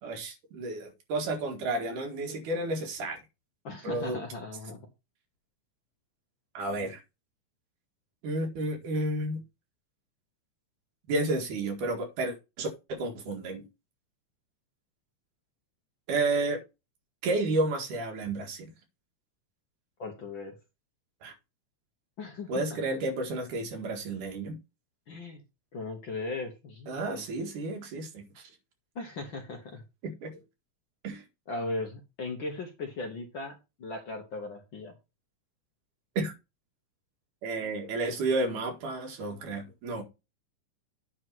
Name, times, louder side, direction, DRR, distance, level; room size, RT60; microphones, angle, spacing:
voice 1, 0.0-3.2 3.8-4.2 6.5-7.0 8.2-9.4 11.1-13.6 16.1-16.6 17.2-18.7 21.2-21.3 22.5-24.6 26.9-28.4 30.0-30.4 31.0-31.2 36.2-36.3 37.4-40.0, right 2 dB, 90° right, 3.4 m, -31 dB
voice 2, 3.6-4.9 20.0-20.6 22.2-22.6 25.1-25.4 25.7-27.2 28.9-29.8 31.5-35.0, left 3 dB, 55° left, 1.5 m, -38 dB
9.3 x 3.7 x 5.9 m
omnidirectional pair, 3.5 m